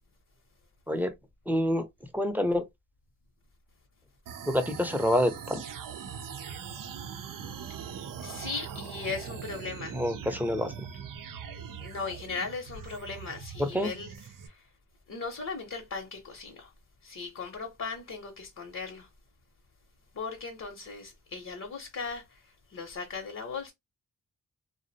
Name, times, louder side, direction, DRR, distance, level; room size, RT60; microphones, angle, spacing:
voice 1, 1.5-1.9 2.1-2.6 4.5-5.6 9.9-10.9 13.6-13.9, equal, 5° right, 0.6 m, -27 dB
sound 1, 4.2-14.5, right 7 dB, 80° right, 0.5 m, -41 dB
voice 2, 7.6-10.0 11.8-14.7 15.1-16.7 17.0-19.1 20.1-23.7, left 4 dB, 55° left, 0.8 m, -38 dB
2.4 x 2.0 x 2.7 m
cardioid pair, 55°, 32 cm